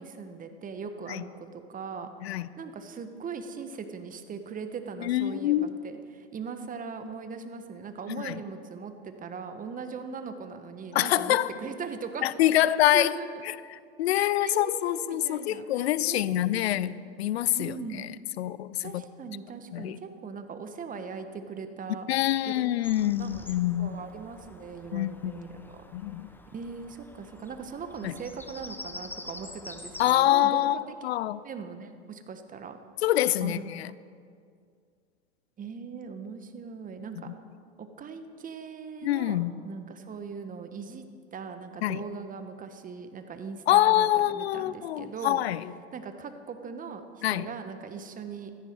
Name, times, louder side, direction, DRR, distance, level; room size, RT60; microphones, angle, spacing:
voice 1, 0.0-12.3 12.5-12.6 12.9-13.4 14.1-17.1 17.5-18.0 18.8-22.1 22.4-25.8 26.5-31.2 31.4-32.8 33.4-33.6 35.6-37.3 37.8-41.0 41.3-45.4 45.9-48.5, right 5 dB, 25° right, 1.4 m, -40 dB
voice 2, 5.0-5.7 8.1-8.3 10.9-11.5 12.2-13.1 13.5-18.1 18.4-19.0 19.7-20.0 22.1-24.0 24.9-25.3 25.9-26.3 28.0-28.1 30.0-31.4 33.0-33.9 39.0-39.5 41.8-42.0 43.7-45.6 47.2-47.5, left 13 dB, 70° left, 0.5 m, -26 dB
Bird vocalization bird call bird song, 22.8-30.1, left 2 dB, 5° left, 1.0 m, -46 dB
15.5 x 14.0 x 4.7 m
hypercardioid pair, 95°, 33 cm